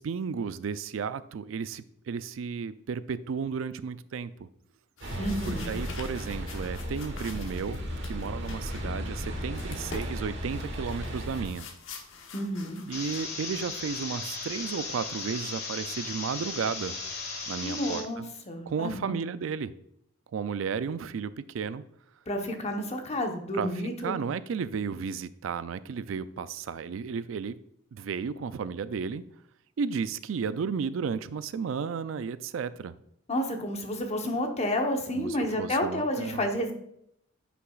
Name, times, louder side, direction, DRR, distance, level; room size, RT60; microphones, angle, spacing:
voice 1, 0.0-4.5 5.5-11.7 12.9-17.0 17.5-18.2 18.7-19.7 20.3-21.8 23.5-23.7 24.0-27.6 27.9-29.2 29.8-32.9 35.1-36.5, right 6 dB, 85° right, 15 dB, 0.4 m, -33 dB
sound 1, 5.0-13.2, left 4 dB, 75° left, 1.1 m, -47 dB
sound 2, 5.0-11.5, equal, 65° right, 1.4 m, -35 dB
voice 2, 5.2-5.7 12.3-12.8 17.6-19.2 22.3-24.2 33.3-36.7, left 1 dB, 35° left, 3 dB, 1.0 m, -30 dB
sound 3, 12.9-18.0, left 4 dB, 55° left, 1.7 m, -36 dB
9.7 x 5.9 x 2.4 m, 0.73 s
head